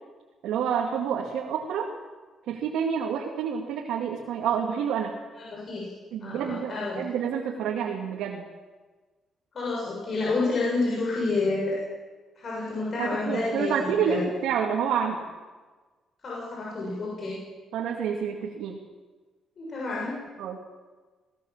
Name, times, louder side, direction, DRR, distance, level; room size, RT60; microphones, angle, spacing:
voice 1, 0.4-1.9 2.5-5.1 6.1-8.4 13.0-15.3 17.7-18.8 20.4-20.6, right 7 dB, 85° right, -1 dB, 2.5 m, -28 dB
voice 2, 5.4-5.9 6.2-7.0 9.5-11.8 12.4-14.2 16.2-17.4 19.6-20.1, left 3 dB, 50° left, -5 dB, 7.0 m, -29 dB
18.5 x 18.5 x 7.5 m, 1.3 s
cardioid pair, 90°, 0 cm